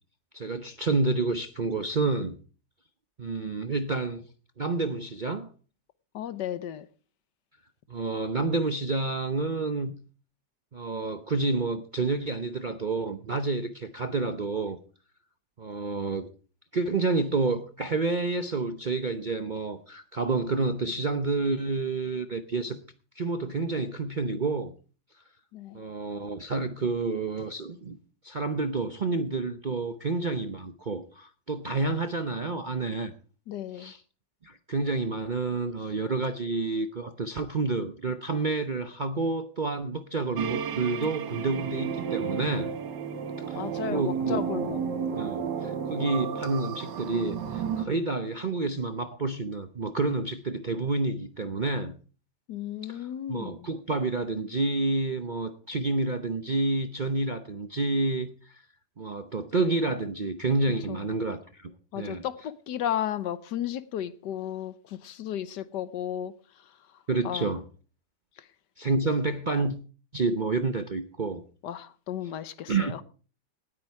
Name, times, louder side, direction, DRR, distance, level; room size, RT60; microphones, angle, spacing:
voice 1, 0.3-2.3 3.2-4.2 4.6-5.5 7.9-9.9 10.7-14.8 15.6-16.3 16.7-22.8 23.1-24.7 25.7-28.0 28.2-33.1 33.8-34.0 34.4-42.7 43.5-44.4 45.2-51.9 52.8-58.6 59.0-62.2 67.1-67.6 68.8-69.8 70.1-71.4 72.7-73.0, right 3 dB, 45° right, 0.6 m, -29 dB
voice 2, 6.1-6.9 25.5-25.8 33.5-33.9 43.5-44.9 45.1-45.4 52.5-53.7 60.9-61.1 61.9-66.8 67.2-67.5 68.4-68.5 71.6-73.0, left 10 dB, 75° left, 1.4 m, -34 dB
sound 1, 40.4-47.8, right 7 dB, 75° right, 1.9 m, -32 dB
19.0 x 8.8 x 4.7 m
omnidirectional pair, 1.9 m